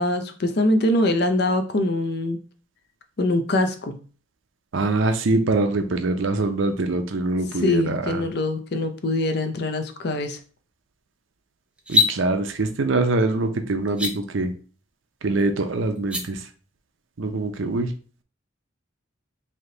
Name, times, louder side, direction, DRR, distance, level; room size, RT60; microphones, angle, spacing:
voice 1, 0.0-2.4 3.2-4.0 7.6-10.4, left 1 dB, 55° left, 7 dB, 0.5 m, -23 dB
voice 2, 4.7-8.3 11.9-14.5 15.2-16.4 17.2-17.9, right 2 dB, 70° right, 7 dB, 0.6 m, -23 dB
sound 1, 11.8-12.1 13.9-14.1 16.0-16.2, left 3 dB, 5° right, 0.4 m, -20 dB
3.4 x 2.7 x 3.8 m, 0.39 s
head